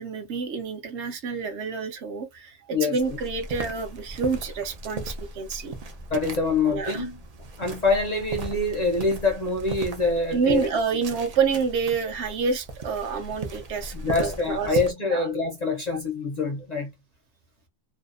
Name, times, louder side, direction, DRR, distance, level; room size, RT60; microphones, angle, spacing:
voice 1, 0.0-5.7 6.7-7.1 10.3-15.3, right 5 dB, 65° right, 0.8 m, -28 dB
sound 1, 3.0-14.9, right 3 dB, 80° right, 0.3 m, -37 dB
voice 2, 6.1-7.2 7.6-10.7 13.9-16.9, left 3 dB, 65° left, 0.4 m, -25 dB
2.7 x 2.0 x 2.4 m
omnidirectional pair, 1.4 m